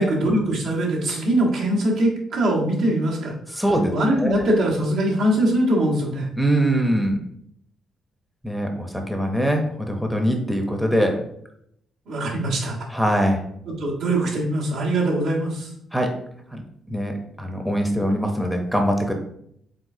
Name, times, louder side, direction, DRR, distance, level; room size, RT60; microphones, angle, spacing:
voice 1, 0.0-3.6 3.9-6.3 12.1-12.9 13.7-15.7, right 1 dB, 80° right, -4 dB, 1.4 m, -22 dB
voice 2, 3.6-3.9 4.2-4.4 6.4-7.2 8.4-11.2 12.9-13.4 15.9-16.2 16.5-16.6 16.9-19.1, equal, ahead, 3 dB, 0.7 m, -22 dB
4.9 x 3.4 x 2.7 m, 0.71 s
cardioid pair, 90°, 0 cm